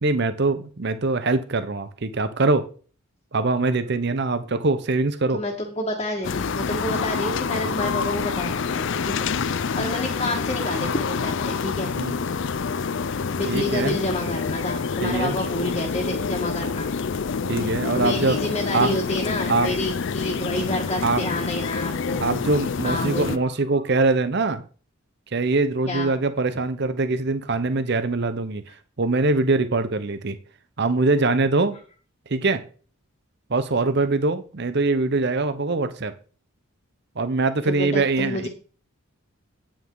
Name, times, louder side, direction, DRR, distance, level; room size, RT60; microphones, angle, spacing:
voice 1, 0.0-2.6 3.3-5.4 12.0-12.2 13.5-14.0 15.0-15.3 17.5-18.4 18.7-18.9 19.5-19.7 21.0-21.2 22.2-24.6 25.3-28.6 29.0-30.4 30.8-31.8 32.3-32.6 33.5-36.1 37.2-38.5, right 3 dB, 50° right, 12 dB, 0.7 m, -23 dB
voice 2, 5.3-9.3 9.6-11.9 13.3-16.9 17.9-22.4 22.8-23.4 25.9-26.1 37.7-38.5, left 1 dB, 25° left, -2 dB, 1.6 m, -29 dB
sound 1, 6.2-23.4, left 5 dB, 55° left, 0.5 m, -27 dB
9.3 x 8.8 x 3.9 m, 0.39 s
head